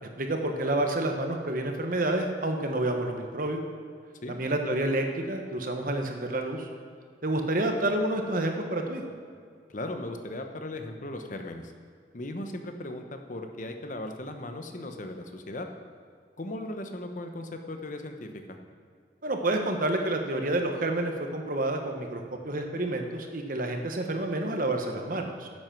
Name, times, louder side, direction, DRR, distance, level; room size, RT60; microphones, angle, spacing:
voice 1, 0.0-3.6 4.3-6.7 7.2-9.0 19.2-25.5, right 1 dB, 50° right, 4 dB, 1.2 m, -29 dB
voice 2, 9.7-11.7 12.1-15.7 16.4-18.6, left 1 dB, 45° left, 5 dB, 1.0 m, -37 dB
10.0 x 7.7 x 5.9 m, 2.2 s
head